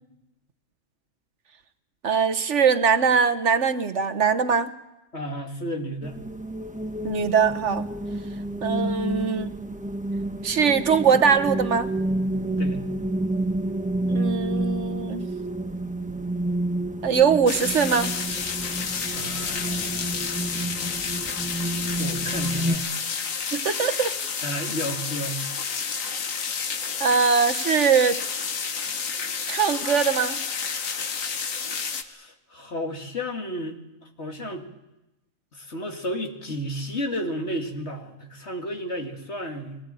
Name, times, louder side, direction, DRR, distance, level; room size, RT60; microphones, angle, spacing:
voice 1, 2.0-4.7 7.0-7.8 8.6-9.5 10.4-11.9 14.1-15.3 17.0-18.1 23.5-24.1 27.0-28.2 29.5-30.4, right 6 dB, 65° right, 9 dB, 1.4 m, -21 dB
voice 2, 5.1-6.2 12.6-12.8 19.1-20.1 22.0-22.8 24.4-25.4 31.9-34.7 35.5-39.8, equal, 55° left, 3 dB, 2.6 m, -32 dB
sound 1, 6.0-22.8, right 1 dB, 5° right, 1.0 m, -29 dB
sound 2, 17.5-32.0, left 6 dB, 90° left, 1.6 m, -30 dB
22.5 x 19.0 x 9.0 m, 0.96 s
omnidirectional pair, 1.4 m